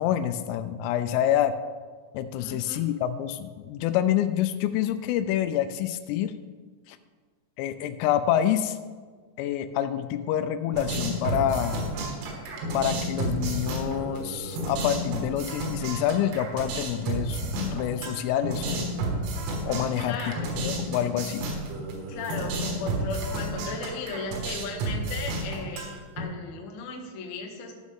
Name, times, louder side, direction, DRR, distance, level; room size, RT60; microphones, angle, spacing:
voice 1, 0.0-1.5 2.1-6.3 6.9-7.0 7.6-8.8 9.4-11.8 12.7-18.9 19.7-20.2 20.6-21.5, left 10 dB, 85° left, 10 dB, 3.2 m, -27 dB
voice 2, 2.4-2.8 20.0-20.6 22.1-27.7, left 4 dB, 70° left, 1 dB, 2.3 m, -36 dB
sound 1, 10.7-26.2, right 2 dB, 80° right, 4.2 m, -32 dB
15.5 x 6.3 x 3.6 m, 1.5 s
omnidirectional pair, 6.0 m